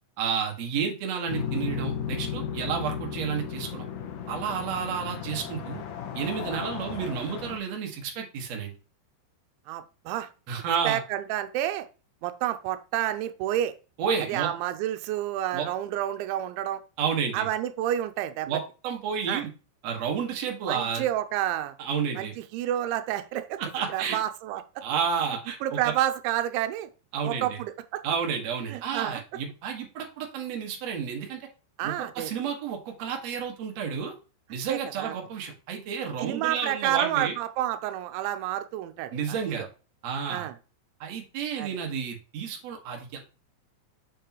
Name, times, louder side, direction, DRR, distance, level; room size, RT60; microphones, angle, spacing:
voice 1, 0.2-3.9 4.3-5.8 6.1-8.7 10.5-11.0 14.0-14.5 15.5-15.7 17.0-17.5 18.5-19.5 19.8-21.0 21.8-22.4 23.6-24.2 24.8-25.9 27.1-27.6 28.0-31.5 31.8-34.1 34.5-37.3 39.1-39.7 40.0-40.5 41.0-43.3, right 6 dB, 55° right, 1 dB, 2.1 m, -31 dB
sound 1, 1.3-7.6, left 8 dB, 80° left, 1.8 m, -35 dB
voice 2, 9.7-10.3 10.8-11.9 12.2-13.7 14.3-16.8 17.3-18.5 19.3-19.4 20.7-21.8 22.2-23.6 23.9-24.8 25.6-26.9 27.2-28.0 28.7-29.2 31.8-32.3 34.7-35.1 36.2-39.7 40.3-40.5 41.6-41.7, right 12 dB, 90° right, 10 dB, 3.0 m, -29 dB
7.1 x 6.7 x 3.0 m, 0.34 s
omnidirectional pair, 5.2 m